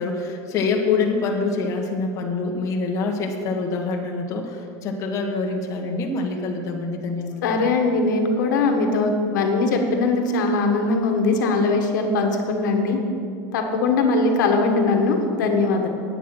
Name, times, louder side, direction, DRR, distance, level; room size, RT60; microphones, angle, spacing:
voice 1, 0.0-7.7, left 4 dB, 35° left, 0 dB, 1.3 m, -25 dB
voice 2, 7.4-13.0 13.5-15.9, left 3 dB, 90° left, 3 dB, 1.5 m, -21 dB
9.4 x 8.3 x 6.0 m, 2.4 s
supercardioid pair, 150°, 10 cm